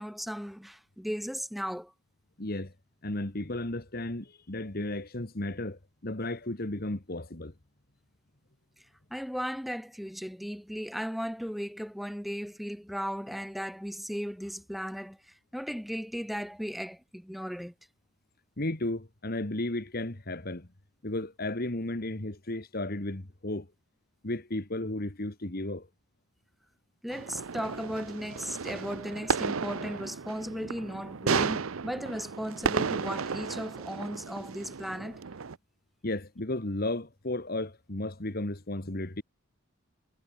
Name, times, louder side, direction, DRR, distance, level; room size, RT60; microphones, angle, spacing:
voice 1, 0.0-1.9 8.8-17.7 27.0-35.2, equal, ahead, 4.6 m, -36 dB
voice 2, 2.4-2.7 3.0-7.5 18.6-20.7 21.0-23.7 24.2-25.9 36.0-39.2, left 1 dB, 45° left, 1.8 m, -34 dB
sound 1, 27.1-35.6, right 5 dB, 80° right, 0.7 m, -33 dB
head